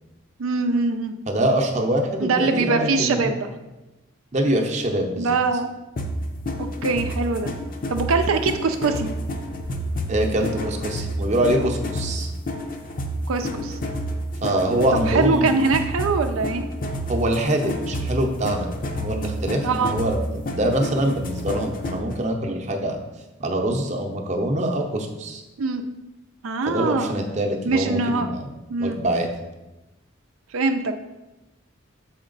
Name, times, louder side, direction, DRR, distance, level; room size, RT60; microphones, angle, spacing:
voice 1, 0.4-1.1 2.2-3.5 5.2-5.7 6.6-7.5 7.9-9.1 13.3-13.8 14.9-16.6 19.6-20.0 25.6-25.8 26.4-27.2 27.7-28.3 28.7-29.0 30.5-30.9, right 3 dB, 85° right, 6 dB, 0.5 m, -23 dB
voice 2, 1.3-3.3 4.3-5.4 10.1-12.3 14.4-15.6 17.1-20.2 20.5-23.0 23.4-25.4 26.7-28.5 28.8-29.3, right 1 dB, 35° right, 2 dB, 0.7 m, -24 dB
sound 1, 6.0-22.1, equal, 40° left, 0.6 m, -29 dB
7.2 x 4.3 x 3.9 m, 1.0 s
head